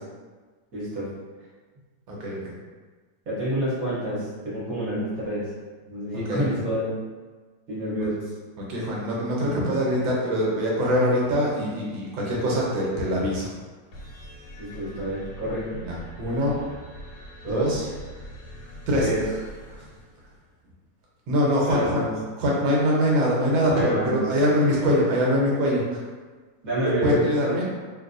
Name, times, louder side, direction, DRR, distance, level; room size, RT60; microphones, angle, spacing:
voice 1, 0.7-1.1 3.3-5.5 5.9-6.8 7.7-8.2 14.6-15.9 17.4-17.9 19.0-19.2 21.7-22.1 23.7-24.3 26.6-27.6, equal, 50° right, -9 dB, 1.4 m, -28 dB
voice 2, 2.1-2.6 6.1-6.5 8.0-8.1 8.6-13.5 15.8-16.6 17.4-17.8 18.9-19.3 19.7-19.8 21.3-22.0 22.4-26.0 27.0-27.6, equal, 80° right, -4 dB, 1.6 m, -23 dB
sound 1, 13.9-20.5, equal, 85° left, 1.5 m, -42 dB
3.8 x 2.6 x 2.5 m, 1.4 s
omnidirectional pair, 2.1 m